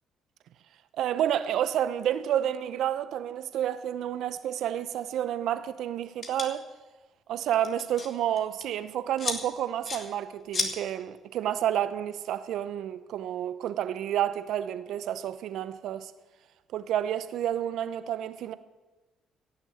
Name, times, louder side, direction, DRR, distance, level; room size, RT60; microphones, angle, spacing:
voice 1, 1.0-6.7 7.3-16.1 16.7-18.5, right 10 dB, 75° right, 0.8 m, -30 dB
sound 1, 6.2-6.5 7.4-8.1 8.4-8.6 9.2-9.4 9.8-10.0 10.5-10.7, left 4 dB, 45° left, 2.4 m, -31 dB
16.5 x 7.2 x 8.0 m
supercardioid pair, 60°, 0 cm